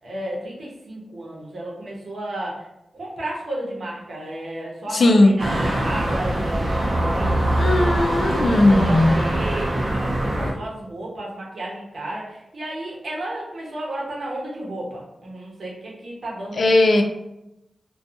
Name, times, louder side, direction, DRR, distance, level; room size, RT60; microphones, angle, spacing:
voice 1, 0.0-2.7 2.9-7.8 8.3-16.6 16.9-17.0, right 1 dB, 75° right, -4 dB, 0.8 m, -33 dB
voice 2, 4.9-5.4 7.6-9.3 16.5-17.0, left 2 dB, 65° left, 5 dB, 0.3 m, -17 dB
sound 1, 5.4-10.5, right 1 dB, 45° right, 0.5 m, -23 dB
2.6 x 2.2 x 2.4 m, 0.87 s
wide cardioid pair, 75°, 0 cm